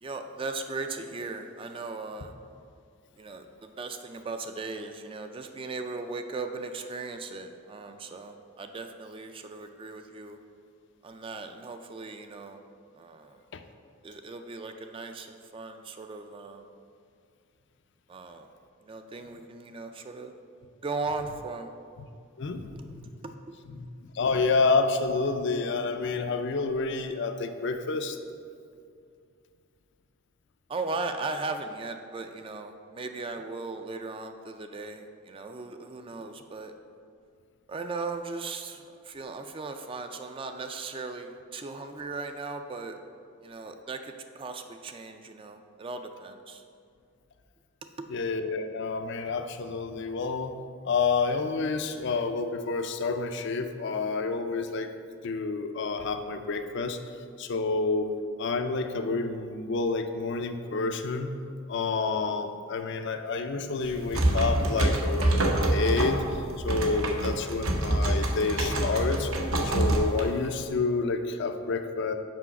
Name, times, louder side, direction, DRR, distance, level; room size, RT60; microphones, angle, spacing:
voice 1, 0.0-2.3 3.2-10.4 11.0-12.6 13.0-13.4 14.0-16.7 18.1-18.5 18.8-20.3 20.8-21.7 22.9-23.6 30.7-36.7 37.7-42.9 43.4-46.6 48.0-48.1, right 3 dB, 25° right, 6 dB, 0.3 m, -37 dB
voice 2, 22.4-23.1 23.8-28.2 48.1-50.6 50.8-54.9 55.2-57.0 57.4-58.1 58.4-61.3 61.7-65.4 65.7-66.2 66.6-69.3 69.6-72.1, left 4 dB, 55° left, 7 dB, 0.4 m, -29 dB
sound 1, 63.8-70.6, right 1 dB, 85° right, 0.9 m, -26 dB
6.1 x 4.9 x 5.8 m, 2.3 s
head